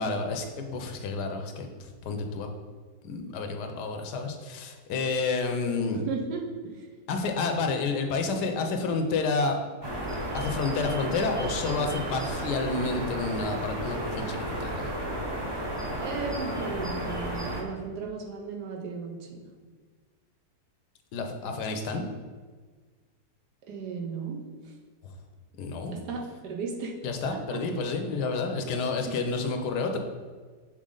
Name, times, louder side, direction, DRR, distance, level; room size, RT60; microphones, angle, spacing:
voice 1, 0.0-2.5 3.0-6.0 7.1-9.6 10.3-14.9 21.1-22.0 25.0-25.1 25.6-25.9 27.0-30.0, left 4 dB, 80° left, 5 dB, 1.3 m, -30 dB
voice 2, 5.9-6.9 16.0-19.5 23.7-24.4 25.9-26.9 27.3-27.6 28.2-28.3 29.1-29.2, right 5 dB, 80° right, 1 dB, 1.4 m, -36 dB
sound 1, 9.8-17.6, right 1 dB, 30° right, 0.5 m, -33 dB
6.3 x 4.0 x 3.8 m, 1.5 s
omnidirectional pair, 1.8 m